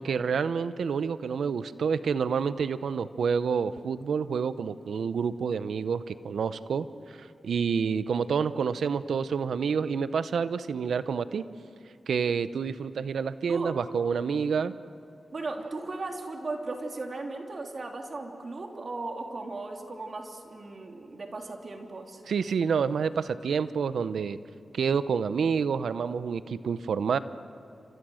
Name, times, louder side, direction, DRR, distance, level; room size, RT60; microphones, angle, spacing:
voice 1, 0.0-6.9 7.2-11.4 12.1-14.7 22.3-24.4 24.7-27.2, right 6 dB, 85° right, 13 dB, 0.8 m, -28 dB
voice 2, 15.3-22.2, right 3 dB, 55° right, 2 dB, 3.2 m, -37 dB
30.0 x 26.5 x 6.4 m, 2.9 s
cardioid pair, 55°, 0 cm